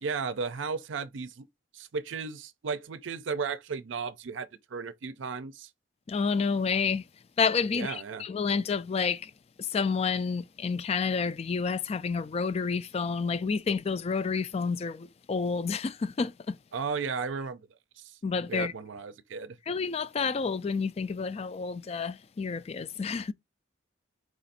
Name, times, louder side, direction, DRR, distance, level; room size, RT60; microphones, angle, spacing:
voice 1, 0.0-1.5 1.7-5.7 7.7-8.2 16.7-17.6 18.0-18.1 18.5-19.6, right 5 dB, 80° right, 0.5 m, -34 dB
voice 2, 6.1-7.1 7.4-9.3 9.6-16.6 18.2-18.7 19.7-23.3, left 5 dB, 35° left, 0.3 m, -29 dB
4.8 x 2.5 x 4.1 m
head